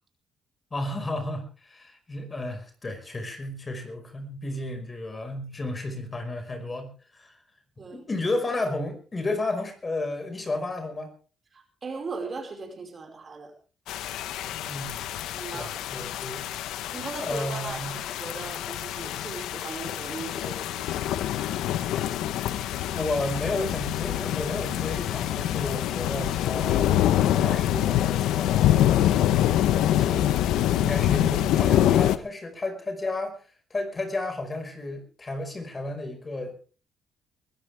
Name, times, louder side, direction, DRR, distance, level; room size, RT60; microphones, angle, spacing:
voice 1, 0.7-7.4 7.9-11.1 14.5-15.1 15.5-16.5 17.2-18.0 22.9-27.0 27.3-29.0 29.6-30.4 30.8-33.4 33.7-36.6, left 2 dB, 30° left, 7 dB, 5.3 m, -33 dB
voice 2, 11.5-13.5 15.3-15.8 16.9-20.8, right 4 dB, 40° right, 4 dB, 5.4 m, -38 dB
sound 1, 13.9-32.2, left 12 dB, 90° left, 1.0 m, -25 dB
22.5 x 15.0 x 3.5 m, 0.37 s
cardioid pair, 90°, 0 cm